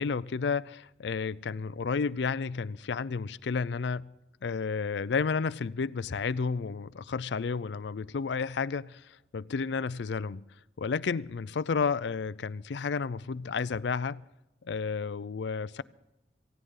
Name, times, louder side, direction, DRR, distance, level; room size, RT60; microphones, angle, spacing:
voice 1, 0.0-4.1 4.4-10.4 10.8-14.2 14.6-15.8, left 5 dB, 75° left, 0.4 m, -31 dB
18.0 x 16.0 x 3.8 m
head